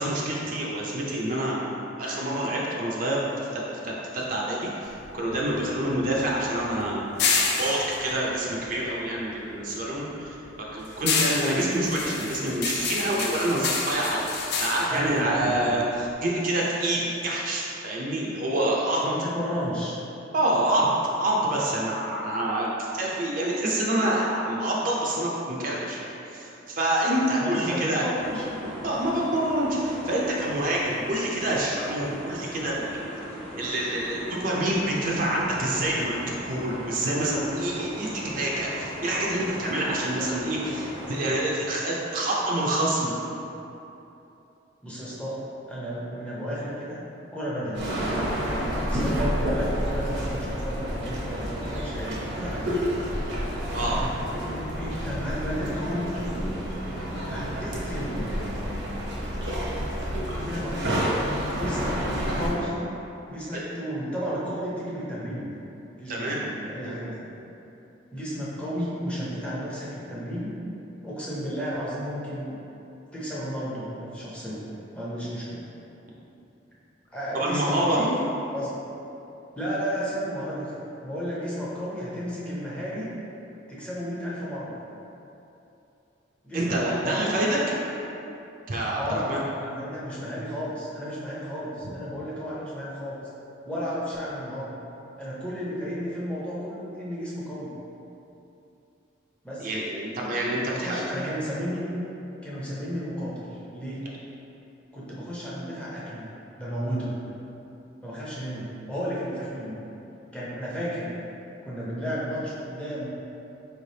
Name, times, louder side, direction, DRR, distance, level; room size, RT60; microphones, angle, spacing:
voice 1, 0.0-1.7 2.0-3.2 3.5-7.0 7.6-10.4 10.7-19.0 20.3-22.7 22.9-28.0 28.8-33.0 33.6-36.2 36.5-43.1 53.7-54.0 63.5-63.7 66.1-66.4 77.3-78.0 86.5-87.6 88.7-89.4 99.6-101.1, right 1 dB, 45° right, -4 dB, 0.5 m, -27 dB
sound 1, 4.8-9.3 9.7-16.1, left 4 dB, 55° left, 0.4 m, -29 dB
voice 2, 14.9-15.7 19.0-20.0 27.4-28.7 44.8-47.0 47.3-48.0 48.9-52.8 53.8-54.1 54.8-56.2 57.3-58.5 60.4-61.0 61.5-62.0 62.3-62.7 63.3-65.6 66.0-67.3 68.1-70.5 71.0-72.6 73.1-74.7 74.9-75.6 77.1-78.1 78.5-78.7 79.5-83.1 83.7-84.8 86.4-87.4 88.9-93.2 93.6-94.7 95.2-97.7 99.4-99.7 100.7-101.9 102.4-104.1 104.9-106.3 106.6-107.2 108.0-109.8 110.3-111.1 111.6-113.1, equal, 5° left, -8 dB, 0.6 m, -33 dB
sound 2, 28.2-41.4, equal, 30° left, 1.0 m, -38 dB
sound 3, 47.7-62.5, equal, 70° right, 0.8 m, -29 dB
4.5 x 3.2 x 2.7 m, 2.9 s
head